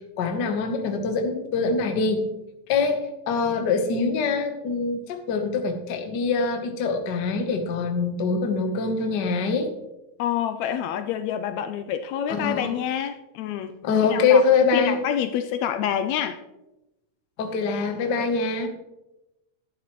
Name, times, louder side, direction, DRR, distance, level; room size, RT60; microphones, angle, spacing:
voice 1, 0.2-2.3 2.7-9.7 12.3-12.8 13.8-15.0 17.4-18.7, left 4 dB, 60° left, 5 dB, 1.1 m, -24 dB
voice 2, 10.2-13.7 14.1-14.4 14.7-16.4, left 9 dB, 80° left, 9 dB, 1.7 m, -27 dB
11.5 x 11.0 x 3.1 m, 0.98 s
omnidirectional pair, 3.4 m